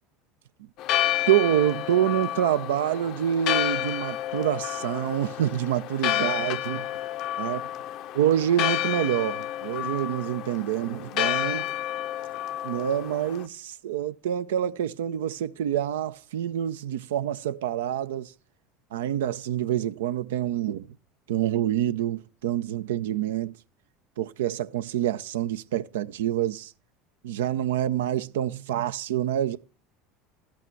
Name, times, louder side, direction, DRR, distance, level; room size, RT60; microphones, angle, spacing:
Church bell, 0.8-13.5, left 13 dB, 55° left, 0.6 m, -30 dB
voice 1, 1.3-6.9 7.4-7.6 8.1-11.7 12.6-18.3 18.9-20.9 21.3-23.5 24.2-26.7 27.2-29.6, right 11 dB, 70° right, 0.5 m, -27 dB
13.0 x 8.5 x 4.5 m
hypercardioid pair, 75°, 0 cm